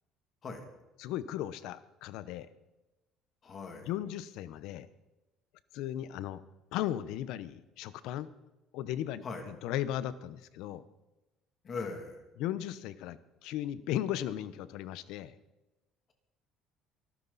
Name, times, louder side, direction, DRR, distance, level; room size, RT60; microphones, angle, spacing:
voice 1, 1.0-2.5 3.9-4.9 5.7-6.4 6.7-8.3 8.7-10.8 12.4-15.3, left 12 dB, 70° left, 15 dB, 0.8 m, -36 dB
voice 2, 3.4-3.9 9.2-9.5 11.6-12.3, left 4 dB, 30° left, 4 dB, 2.5 m, -40 dB
23.5 x 13.0 x 4.1 m, 1.0 s
cardioid pair, 165°, 0 cm